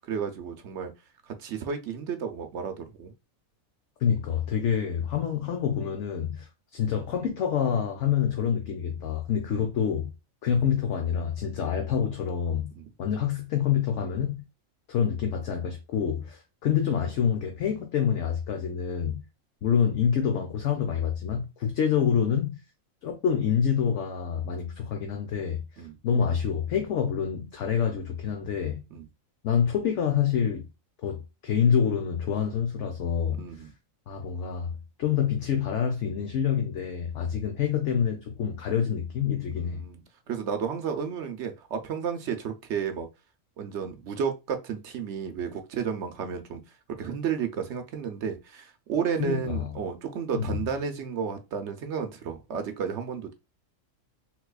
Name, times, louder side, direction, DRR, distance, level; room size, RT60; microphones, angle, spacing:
voice 1, 0.0-0.9 1.3-3.1 9.5-9.6 12.8-12.9 25.8-26.0 28.9-29.1 33.3-33.7 39.5-40.0 40.3-43.1 43.6-46.6 46.9-53.3, right 7 dB, 65° right, 0.8 m, -32 dB
voice 2, 4.0-10.1 10.4-12.7 13.0-14.4 14.9-19.2 19.6-22.6 23.0-28.8 29.4-30.7 31.0-33.7 34.1-39.8 49.2-49.7 50.3-50.6, left 8 dB, 65° left, 0.9 m, -27 dB
3.9 x 2.9 x 2.2 m
omnidirectional pair, 1.5 m